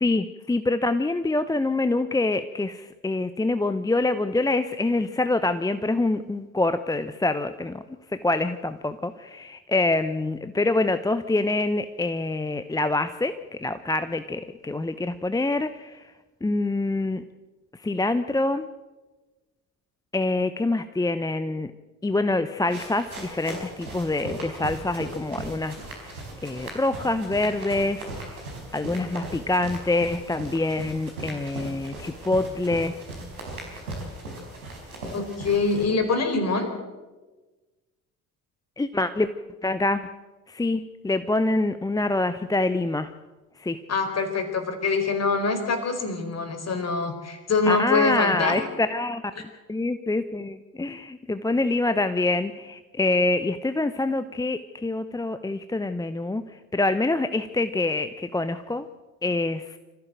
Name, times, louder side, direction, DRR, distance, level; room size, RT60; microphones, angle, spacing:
voice 1, 0.0-7.8 8.1-16.1 16.4-17.2 17.7-18.7 20.1-21.7 22.0-25.8 26.4-28.4 28.7-32.9 38.8-39.3 39.6-40.0 40.5-43.1 43.6-43.8 47.7-58.9 59.2-59.8, left 2 dB, 10° left, 11 dB, 0.8 m, -26 dB
sound 1, 22.6-35.8, right 1 dB, 80° right, 4.9 m, -38 dB
voice 2, 35.1-36.7 43.9-48.7 49.4-49.5, left 4 dB, 35° left, 6 dB, 4.4 m, -24 dB
25.5 x 15.0 x 7.6 m, 1.2 s
figure-of-eight pair, 55°, 43 cm